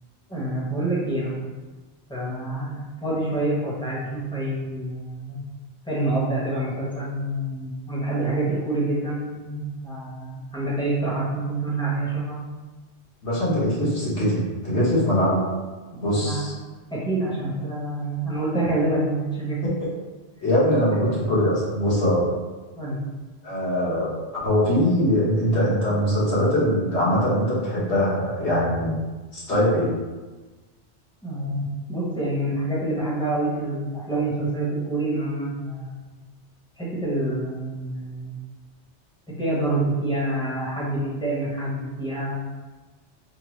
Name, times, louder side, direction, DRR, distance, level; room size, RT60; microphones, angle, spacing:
voice 1, 0.3-1.3 2.1-5.4 5.9-12.4 15.9-16.6 16.9-19.6 20.9-21.0 22.7-23.0 31.2-36.1 36.8-38.4 39.3-42.3, right 2 dB, 5° left, -7 dB, 0.9 m, -27 dB
voice 2, 13.2-15.4 16.0-16.5 20.4-22.2 23.4-24.1 24.4-29.0 29.3-30.0, equal, 70° left, -7 dB, 1.5 m, -22 dB
5.2 x 2.1 x 3.1 m, 1.3 s
omnidirectional pair, 1.2 m